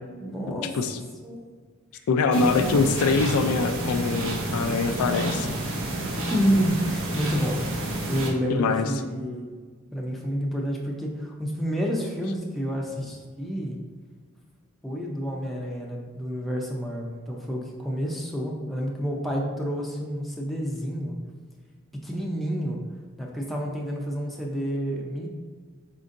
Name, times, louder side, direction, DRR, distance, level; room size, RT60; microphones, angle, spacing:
voice 1, 0.2-0.8 1.2-1.4 6.1-9.5 9.9-13.8 14.8-21.2 22.0-22.8 23.2-25.3, equal, ahead, -2 dB, 0.5 m, -29 dB
voice 2, 2.1-5.5 8.5-8.9, left 4 dB, 80° left, 7 dB, 0.3 m, -23 dB
sound 1, 2.3-8.3, right 1 dB, 60° right, 0.7 m, -29 dB
4.3 x 3.8 x 2.5 m, 1.5 s
head